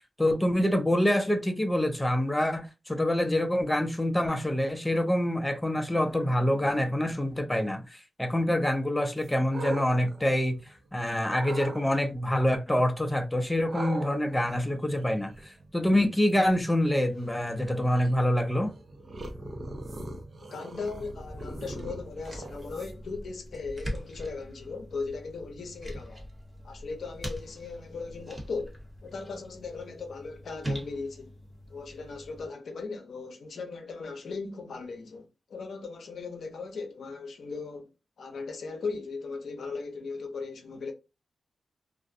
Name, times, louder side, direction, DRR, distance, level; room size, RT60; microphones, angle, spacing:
voice 1, 0.2-10.6 10.9-18.7, left 1 dB, 10° left, 0.5 m, -26 dB
sound 1, 9.2-10.9 11.3-11.8 13.7-23.2, right 2 dB, 50° right, 0.5 m, -42 dB
voice 2, 20.5-26.2 26.6-31.3 31.7-37.9 38.2-40.9, left 4 dB, 75° left, 0.6 m, -38 dB
sound 2, 21.2-32.5, equal, 20° right, 1.1 m, -42 dB
2.4 x 2.0 x 2.6 m
cardioid pair, 55°, 0 cm